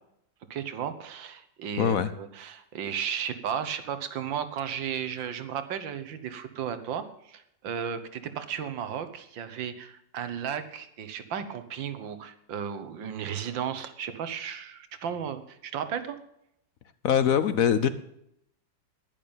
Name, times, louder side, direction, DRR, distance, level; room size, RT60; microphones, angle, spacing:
voice 1, 0.5-16.2, right 8 dB, 80° right, 10 dB, 1.9 m, -34 dB
voice 2, 1.8-2.1 17.0-17.9, left 8 dB, 60° left, 13 dB, 1.0 m, -22 dB
11.0 x 11.0 x 8.8 m, 0.77 s
omnidirectional pair, 2.0 m